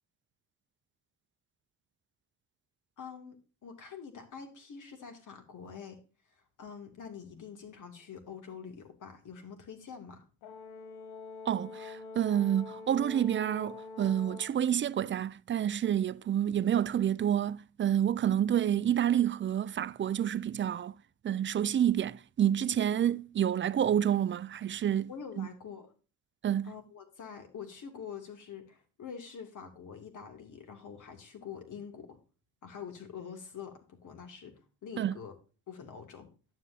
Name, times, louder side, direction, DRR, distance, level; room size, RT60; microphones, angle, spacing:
voice 1, 3.0-6.0 6.3-10.2 22.6-22.8 25.1-25.9 26.6-32.2 32.6-35.4 35.7-36.3, left 7 dB, 60° left, 2.8 m, -46 dB
Brass instrument, 10.4-14.6, left 4 dB, 85° left, 1.1 m, -45 dB
voice 2, 11.5-20.9 21.2-25.1 25.4-25.5 26.4-26.7 35.0-35.2, right 10 dB, 35° right, 0.5 m, -28 dB
11.0 x 8.1 x 2.8 m
cardioid pair, 85°, 35 cm